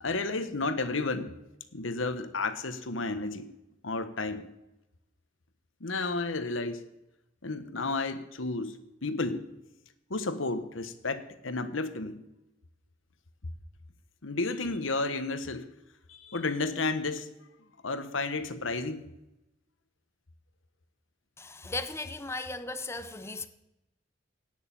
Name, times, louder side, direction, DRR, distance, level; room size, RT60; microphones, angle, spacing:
voice 1, 0.0-1.3 1.7-3.5 3.8-4.5 5.8-6.9 7.4-9.5 10.1-12.2 14.2-15.7 16.1-17.3 17.8-19.1, left 3 dB, 90° left, 1.3 m, -32 dB
voice 2, 21.4-23.5, left 3 dB, 15° left, 0.8 m, -37 dB
17.5 x 6.6 x 8.9 m
head